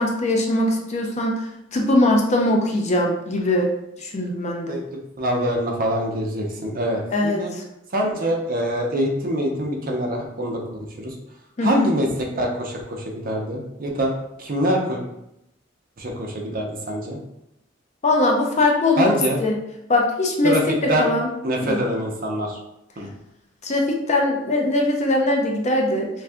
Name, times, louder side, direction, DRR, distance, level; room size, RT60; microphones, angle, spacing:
voice 1, 0.0-1.4 1.7-3.7 4.0-4.8 7.1-7.6 11.6-11.9 18.0-19.1 19.4-19.6 19.9-20.5 20.8-21.3 21.7-21.8 23.6-26.1, left 1 dB, 35° left, 0 dB, 0.5 m, -21 dB
voice 2, 4.7-7.5 7.9-11.1 11.6-14.1 14.4-15.0 16.0-17.2 19.0-19.4 20.4-21.1 21.4-22.6 23.0-23.1, equal, 50° right, 0 dB, 0.6 m, -24 dB
2.6 x 2.3 x 3.4 m, 0.84 s
head